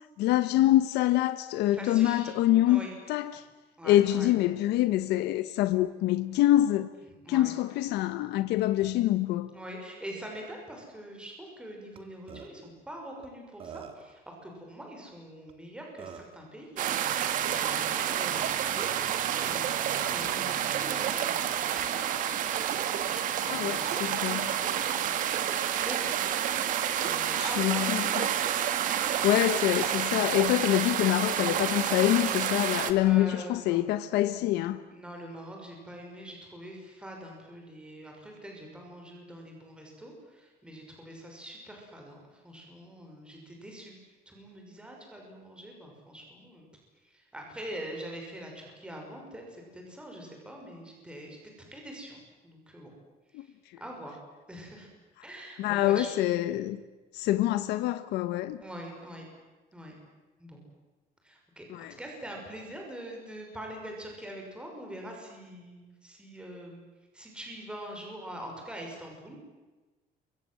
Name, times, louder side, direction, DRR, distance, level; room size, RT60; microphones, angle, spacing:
voice 1, 0.2-3.4 3.8-6.9 7.3-9.5 23.5-24.5 27.4-28.3 29.0-34.8 53.3-53.4 55.6-56.8 57.1-58.6 61.7-61.9, left 14 dB, 85° left, 1.2 m, -26 dB
voice 2, 1.7-2.4 2.7-3.0 3.8-4.3 7.2-7.5 9.5-17.0 17.4-22.4 23.1-25.2 25.6-26.1 27.0-27.9 33.0-33.8 34.9-44.0 44.3-46.6 47.0-51.4 51.7-52.2 52.4-52.9 53.3-53.5 53.8-54.2 54.5-54.9 55.2-56.1 58.6-59.2 59.7-59.9 60.4-60.6 61.2-66.8 67.1-69.4, right 1 dB, 5° right, 6.1 m, -44 dB
Burping eructation, 12.0-12.1 12.3-12.5 13.2-13.3 13.6-14.1 15.5-15.6 16.0-16.4, right 7 dB, 35° right, 2.6 m, -43 dB
sound 1, 16.8-32.9, right 10 dB, 50° right, 2.0 m, -29 dB
28.5 x 25.0 x 7.9 m
cardioid pair, 180°, 17 cm